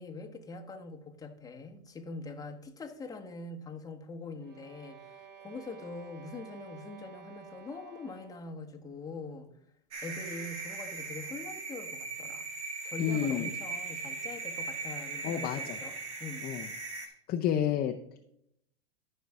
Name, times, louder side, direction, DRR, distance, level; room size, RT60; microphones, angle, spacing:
voice 1, 0.0-9.5 10.0-12.5 12.8-16.5, left 3 dB, 10° left, 1.2 m, -43 dB
sound 1, 4.4-8.5, right 7 dB, 30° right, 1.6 m, -52 dB
sound 2, 9.9-17.1, right 4 dB, 90° right, 2.0 m, -39 dB
voice 2, 13.0-13.5 15.2-15.8 16.4-16.7 17.3-18.2, left 9 dB, 30° left, 0.7 m, -30 dB
13.5 x 5.6 x 3.5 m
hypercardioid pair, 120°, 33 cm